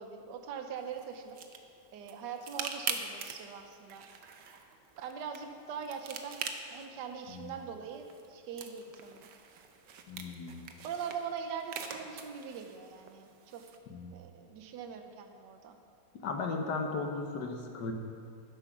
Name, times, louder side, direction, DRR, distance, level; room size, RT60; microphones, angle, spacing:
voice 1, 0.0-1.4 1.9-4.0 5.0-9.3 10.8-13.6 14.1-15.8, right 6 dB, 75° right, 5 dB, 1.5 m, -42 dB
sound 1, 0.8-13.8, right 6 dB, 90° right, 1.6 m, -44 dB
voice 2, 10.1-10.6 13.9-14.2 16.2-17.9, left 4 dB, 70° left, 4 dB, 1.7 m, -36 dB
11.5 x 10.0 x 6.0 m, 2.4 s
omnidirectional pair, 1.9 m